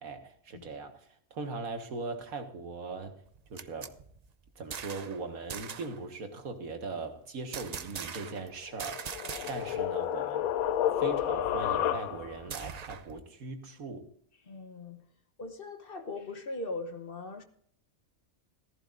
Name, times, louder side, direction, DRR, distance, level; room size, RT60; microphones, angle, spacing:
voice 1, 0.0-3.2 3.5-4.0 4.6-9.2 9.5-10.5 11.0-14.1, right 3 dB, 90° right, 2.0 m, -40 dB
sound 1, 3.3-5.2 5.5-6.0 7.5-8.5 8.8-9.9 10.1-10.2 10.6-13.2, right 7 dB, 60° right, 0.4 m, -42 dB
sound 2, 8.7-12.5, left 11 dB, 90° left, 1.1 m, -31 dB
voice 2, 14.5-15.1 15.4-17.4, left 2 dB, 45° left, 1.1 m, -40 dB
14.5 x 14.5 x 2.5 m
omnidirectional pair, 1.4 m